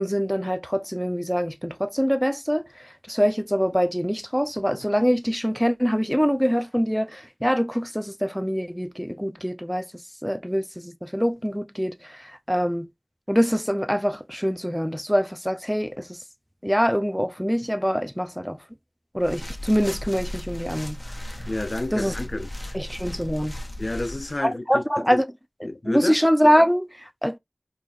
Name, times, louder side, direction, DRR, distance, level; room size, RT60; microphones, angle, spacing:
voice 1, 0.0-12.9 13.3-16.2 16.6-18.6 19.1-21.5 21.9-22.1 22.7-23.6 24.4-25.2 25.6-27.4, equal, ahead, 0.6 m, -24 dB
sound 1, 19.2-24.4, left 1 dB, 30° left, 0.9 m, -36 dB
voice 2, 21.5-22.8 23.8-24.8 25.1-25.2 25.6-26.2, left 2 dB, 60° left, 0.4 m, -30 dB
5.1 x 3.0 x 2.3 m
wide cardioid pair, 45°, 0 cm